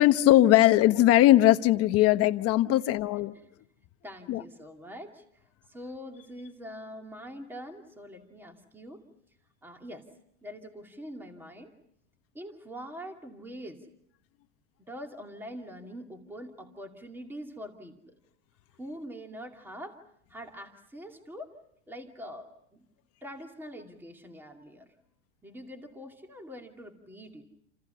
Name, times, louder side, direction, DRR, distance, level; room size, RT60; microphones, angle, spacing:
voice 1, 0.0-3.3 4.3-4.4, left 15 dB, 40° left, 1.2 m, -20 dB
voice 2, 4.0-5.4 5.7-9.0 9.6-10.1 10.4-11.7 12.3-13.9 14.9-18.1 18.8-20.0 20.3-21.5 21.9-22.8 23.2-24.9 25.4-27.4, equal, 5° right, 2.5 m, -44 dB
29.0 x 28.0 x 5.7 m
supercardioid pair, 140°, 37 cm